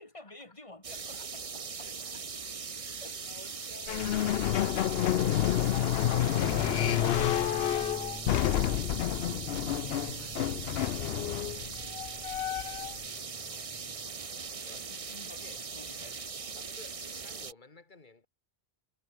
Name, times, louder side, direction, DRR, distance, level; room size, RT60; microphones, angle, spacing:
voice 1, 0.0-1.9 3.0-3.3 3.6-3.7 5.7-7.3 13.1-14.3 14.7-16.6 17.1-17.2, left 2 dB, 30° left, 2.9 m, -52 dB
sound 1, 0.8-17.5, right 5 dB, 35° right, 0.9 m, -40 dB
voice 2, 0.9-1.3 1.8-2.2 2.8-4.5 9.4-11.7 14.6-14.8 15.3-15.6 16.6-18.3, left 3 dB, 45° left, 2.5 m, -55 dB
sound 2, 3.9-13.0, left 12 dB, 70° left, 0.8 m, -29 dB
sound 3, 6.4-14.1, equal, ahead, 0.4 m, -46 dB
omnidirectional pair, 1.1 m